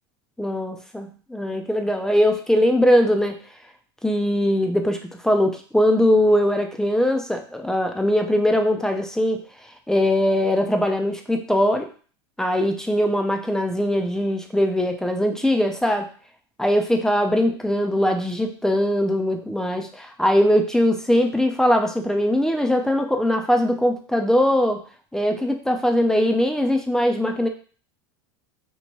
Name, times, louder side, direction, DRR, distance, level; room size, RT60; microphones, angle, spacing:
voice 1, 0.4-3.4 4.0-9.4 9.9-11.9 12.4-16.1 16.6-24.8 25.1-27.5, equal, 5° left, 5 dB, 0.4 m, -21 dB
2.9 x 2.2 x 2.9 m, 0.41 s
supercardioid pair, 110°, 14 cm